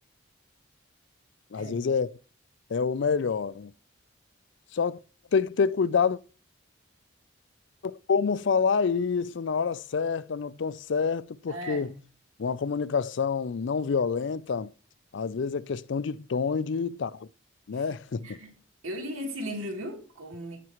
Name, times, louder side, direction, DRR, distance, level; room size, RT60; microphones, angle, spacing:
voice 1, 1.5-2.2 2.7-3.7 4.7-5.0 5.3-6.2 7.8-11.9 12.4-14.7 15.1-17.3 17.7-18.4, left 5 dB, 60° left, 0.4 m, -27 dB
voice 2, 11.5-11.9 18.2-18.5 18.8-20.6, equal, 90° right, 3.1 m, -36 dB
15.5 x 6.0 x 3.0 m
head